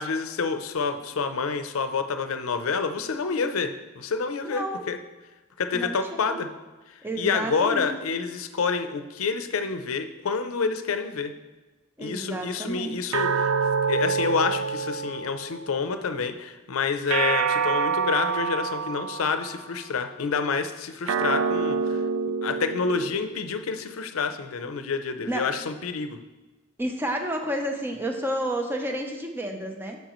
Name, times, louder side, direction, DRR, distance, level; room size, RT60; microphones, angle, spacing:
voice 1, 0.0-5.0 5.6-6.5 7.2-11.3 12.0-13.5 13.9-22.0 22.4-26.2, left 5 dB, 90° left, 9 dB, 0.5 m, -28 dB
voice 2, 4.4-4.9 5.7-6.0 6.3-6.5 7.0-7.9 12.0-13.0 25.2-25.5 26.8-30.0, right 1 dB, 10° right, 3 dB, 0.7 m, -30 dB
sound 1, 13.1-15.7 17.1-19.6 21.1-23.7, right 5 dB, 80° right, 0.4 m, -27 dB
8.8 x 5.5 x 3.0 m, 1.2 s
head